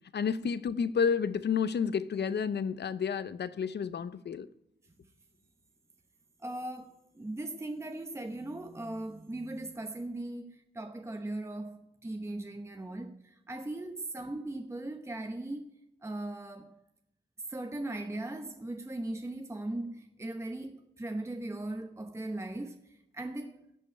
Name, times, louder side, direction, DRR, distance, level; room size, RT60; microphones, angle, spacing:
voice 1, 0.1-4.5, left 6 dB, 60° left, 0.7 m, -30 dB
voice 2, 6.4-15.7 16.0-16.8 17.5-22.8 23.1-23.6, right 2 dB, 15° right, 0.9 m, -38 dB
16.0 x 5.5 x 9.9 m
wide cardioid pair, 100°, 19 cm